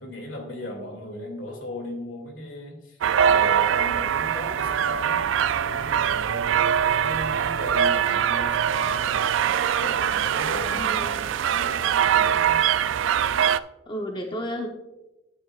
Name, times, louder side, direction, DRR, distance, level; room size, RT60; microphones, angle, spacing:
voice 1, 0.0-3.0 3.3-5.3 5.6-9.2 9.8-12.6, left 1 dB, 75° left, 3 dB, 2.3 m, -37 dB
sound 1, 3.0-13.6, right 9 dB, 70° right, 0.3 m, -23 dB
voice 2, 10.7-11.2 13.9-14.7, equal, 25° left, 2 dB, 0.8 m, -32 dB
12.0 x 8.7 x 2.4 m, 0.96 s
head